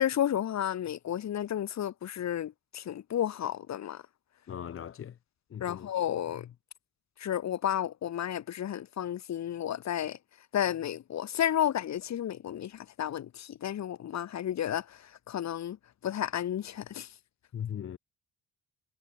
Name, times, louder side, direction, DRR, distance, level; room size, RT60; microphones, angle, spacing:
voice 1, 0.0-4.0 5.6-6.5 7.2-10.2 10.5-15.8 16.0-17.1, left 10 dB, 65° left, 2.4 m, -32 dB
voice 2, 4.5-5.1 5.5-5.9 17.5-18.0, left 9 dB, 45° left, 0.9 m, -38 dB
cardioid pair, 90°, 30 cm